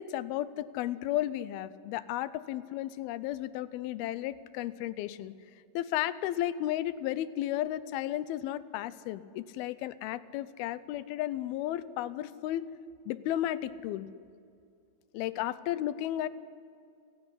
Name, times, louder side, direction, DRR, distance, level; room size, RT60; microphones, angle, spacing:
voice 1, 0.0-5.3 5.7-12.7 13.1-14.1 15.1-16.3, left 13 dB, 80° left, 16 dB, 2.6 m, -33 dB
29.5 x 12.0 x 9.9 m, 2.3 s
omnidirectional pair, 4.4 m